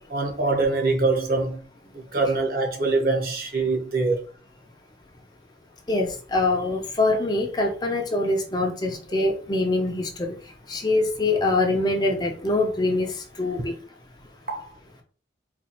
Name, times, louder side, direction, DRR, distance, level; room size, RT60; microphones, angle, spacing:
voice 1, 0.1-1.6 1.9-4.2 14.5-14.7, right 3 dB, 50° right, 0.8 m, -24 dB
voice 2, 5.9-10.3 10.7-13.1 13.4-13.7, left 2 dB, 20° left, 0.4 m, -24 dB
3.9 x 2.3 x 2.9 m
head